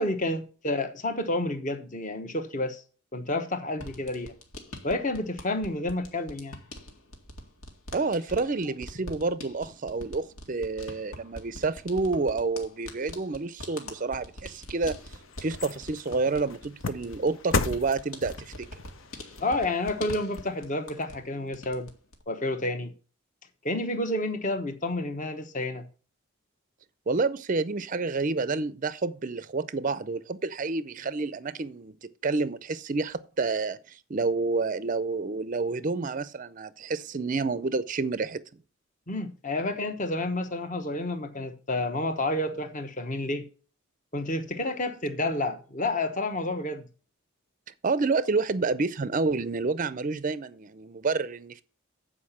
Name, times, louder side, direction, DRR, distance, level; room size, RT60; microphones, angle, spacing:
voice 1, 0.0-2.8 3.1-4.3 4.8-6.6 19.4-21.9 22.3-22.9 23.6-25.9 39.1-43.4 44.1-46.9, left 2 dB, 35° left, 1.0 m, -30 dB
sound 1, 3.8-21.3 21.5-22.2, left 1 dB, 80° left, 2.0 m, -44 dB
voice 2, 7.9-15.0 15.4-18.7 27.1-32.0 32.2-38.4 47.8-51.6, right 3 dB, 40° right, 0.5 m, -29 dB
sound 2, 14.6-21.0 21.5-21.6, left 3 dB, 65° left, 0.8 m, -36 dB
8.5 x 4.9 x 7.3 m
head